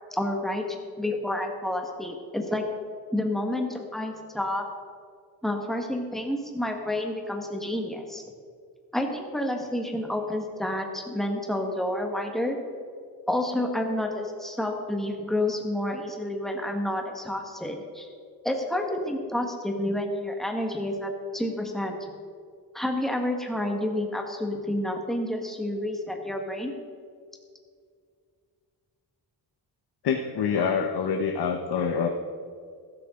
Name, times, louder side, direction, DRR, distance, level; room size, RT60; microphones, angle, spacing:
voice 1, 0.1-2.7 3.1-4.6 5.4-8.2 8.9-12.6 13.3-18.1 18.4-22.0 22.7-26.7, left 1 dB, ahead, 2 dB, 1.5 m, -29 dB
voice 2, 30.0-32.1, left 6 dB, 80° left, 4 dB, 1.0 m, -26 dB
15.5 x 13.5 x 3.8 m, 2.1 s
wide cardioid pair, 150°, 38 cm